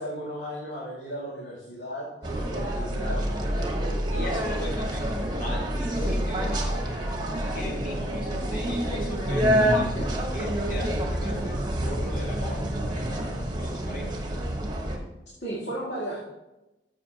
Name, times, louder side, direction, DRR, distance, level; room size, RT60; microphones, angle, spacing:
voice 1, 0.0-4.1 15.4-16.2, equal, 80° left, -6 dB, 2.3 m, -35 dB
sound 1, 2.2-15.0, equal, 25° right, 1.3 m, -27 dB
voice 2, 4.1-5.1 5.4-7.0 7.5-13.2 13.5-14.2, equal, 50° left, -1 dB, 2.1 m, -38 dB
13.0 x 7.3 x 2.9 m, 1.0 s
head